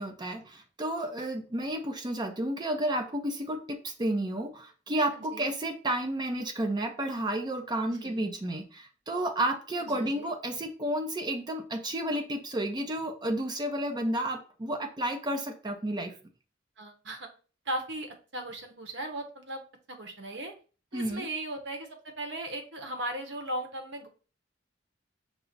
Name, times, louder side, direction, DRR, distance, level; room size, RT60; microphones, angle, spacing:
voice 1, 0.0-16.1 20.9-21.3, right 1 dB, 25° right, 6 dB, 0.5 m, -31 dB
voice 2, 5.2-5.5 7.8-8.2 9.8-10.3 16.8-17.3 17.7-19.6 20.0-20.5 20.9-21.9 22.2-24.1, right 1 dB, 65° right, 4 dB, 0.9 m, -37 dB
5.7 x 2.0 x 3.9 m, 0.36 s
head